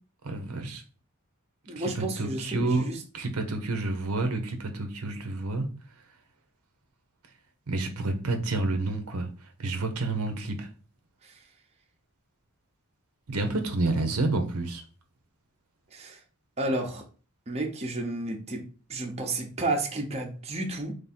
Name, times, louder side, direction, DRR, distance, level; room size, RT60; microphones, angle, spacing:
voice 1, 0.2-0.8 1.8-2.8 3.1-5.7 7.7-9.3 9.6-10.7 13.3-14.8, right 2 dB, 85° right, 5 dB, 0.8 m, -29 dB
voice 2, 1.7-3.0 11.2-11.4 15.9-16.2 16.6-17.0 17.5-18.6 18.9-20.9, right 2 dB, 30° right, 1 dB, 0.8 m, -31 dB
3.6 x 3.3 x 4.2 m, 0.38 s
head